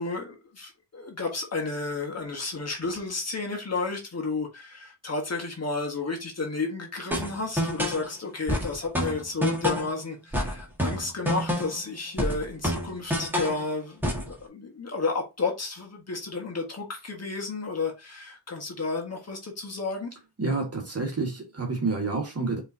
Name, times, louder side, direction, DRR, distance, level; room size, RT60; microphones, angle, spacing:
voice 1, 0.0-20.1, left 3 dB, 40° left, 1.4 m, -32 dB
sound 1, 7.1-8.0 8.5-9.9 10.3-11.8 12.2-13.6 14.0-14.3, equal, 5° right, 1.6 m, -28 dB
voice 2, 20.4-22.6, right 3 dB, 35° right, 1.6 m, -28 dB
5.3 x 3.2 x 2.7 m
cardioid pair, 100°, 41 cm